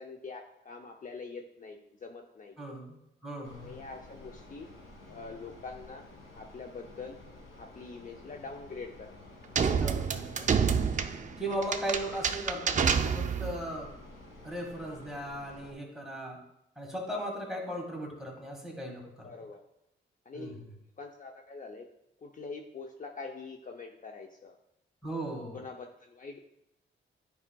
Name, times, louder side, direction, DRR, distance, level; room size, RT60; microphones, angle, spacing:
voice 1, 0.0-2.6 3.6-4.7 5.1-6.1 6.3-7.2 7.5-9.1 9.7-9.8 19.2-19.6 20.3-20.6 21.0-21.9 22.2-24.6 25.5-26.4, left 4 dB, 40° left, 3 dB, 0.6 m, -44 dB
voice 2, 2.6-3.8 9.7-10.7 11.1-13.9 14.4-16.4 16.7-19.3 20.3-20.7 25.0-25.6, right 1 dB, ahead, 0 dB, 1.8 m, -38 dB
sound 1, 3.4-15.7, left 2 dB, 80° left, 1.5 m, -52 dB
sound 2, 9.5-13.6, right 6 dB, 35° right, 0.5 m, -28 dB
9.8 x 4.8 x 2.3 m, 0.83 s
cardioid pair, 85°, 21 cm